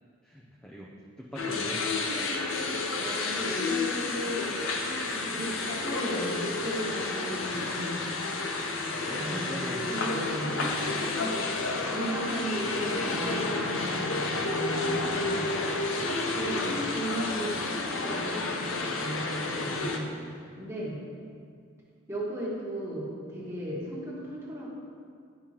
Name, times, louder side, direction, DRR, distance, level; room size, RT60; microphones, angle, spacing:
voice 1, 0.2-1.9 8.9-9.9 19.6-20.2 20.5-20.7, equal, 5° left, -4 dB, 0.4 m, -43 dB
sound 1, 1.4-20.0, left 3 dB, 70° left, 0.6 m, -31 dB
voice 2, 1.4-1.7 3.0-4.5 4.9-8.0 9.0-10.8 11.8-15.5 16.3-20.1 20.6-21.0 22.1-24.7, equal, 15° right, -6 dB, 1.3 m, -36 dB
10.0 x 5.3 x 2.9 m, 2.3 s
head